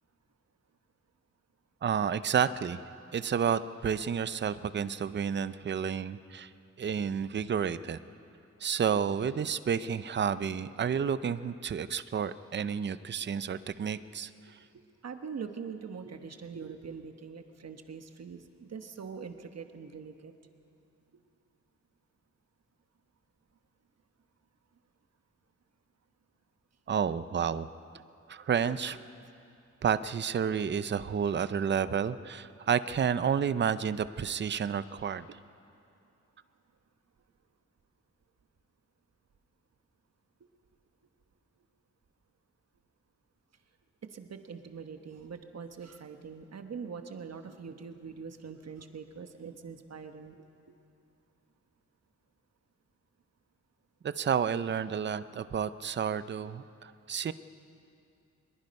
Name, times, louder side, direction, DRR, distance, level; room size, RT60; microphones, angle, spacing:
voice 1, 1.8-2.8 3.1-6.5 6.8-8.0 8.6-14.6 26.9-27.7 28.3-29.1 29.8-35.4 54.0-57.3, right 7 dB, 40° right, 14 dB, 0.5 m, -30 dB
voice 2, 14.7-20.3 44.0-50.4, right 6 dB, 60° right, 7 dB, 1.2 m, -43 dB
23.0 x 21.5 x 5.4 m, 2.6 s
wide cardioid pair, 155°, 30 cm